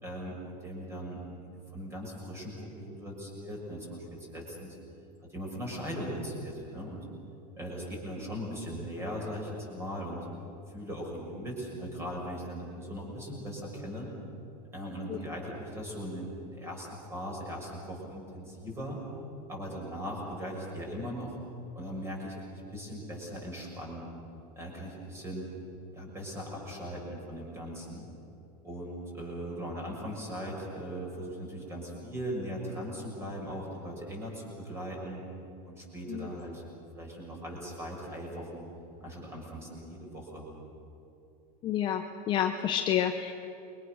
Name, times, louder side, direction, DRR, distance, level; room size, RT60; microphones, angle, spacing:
voice 1, 0.0-4.8 5.3-7.0 7.5-10.3 10.7-14.1 14.7-19.0 19.5-21.3 21.7-24.1 24.6-25.4 25.9-28.1 28.6-35.2 35.6-36.6 36.9-38.6 39.0-40.5, equal, 10° right, -2 dB, 6.4 m, -39 dB
voice 2, 41.6-43.3, left 10 dB, 25° left, 5 dB, 0.8 m, -29 dB
28.0 x 23.5 x 6.5 m, 2.9 s
supercardioid pair, 165°, 21 cm